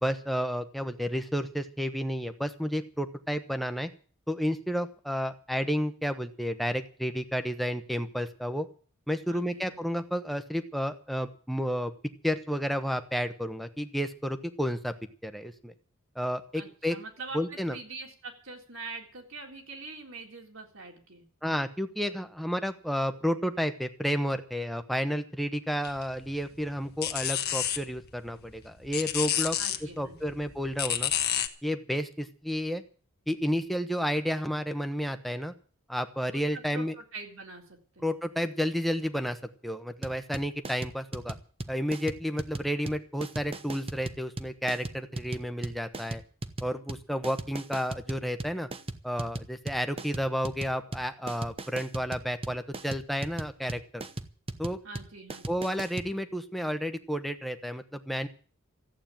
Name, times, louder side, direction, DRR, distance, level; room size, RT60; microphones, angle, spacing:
voice 1, 0.0-3.9 4.3-8.7 9.1-11.9 12.2-14.9 15.2-15.7 16.1-17.0 17.3-17.8 21.4-31.1 31.6-32.8 33.3-35.5 35.9-36.9 38.0-39.4 39.6-41.3 41.7-46.2 46.6-48.7 49.0-54.0 54.6-54.8 55.5-58.3, equal, ahead, 7 dB, 1.1 m, -31 dB
voice 2, 9.3-9.8 16.5-21.3 29.6-30.4 36.3-38.1 54.8-55.7, right 3 dB, 65° right, 2 dB, 3.9 m, -44 dB
sound 1, 25.8-31.5, left 11 dB, 50° left, 1.3 m, -32 dB
sound 2, 40.0-56.1, right 2 dB, 25° right, 0.9 m, -38 dB
14.5 x 8.9 x 8.9 m, 0.42 s
head